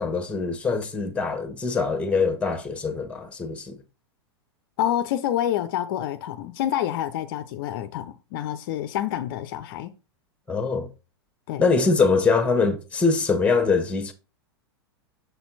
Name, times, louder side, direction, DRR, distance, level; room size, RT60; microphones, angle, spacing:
voice 1, 0.0-3.8 10.5-10.9 11.6-14.1, left 4 dB, 10° left, 1.3 m, -23 dB
voice 2, 4.8-9.9 11.5-11.6, left 11 dB, 55° left, 0.5 m, -27 dB
6.8 x 4.3 x 4.0 m
hypercardioid pair, 100°, 14 cm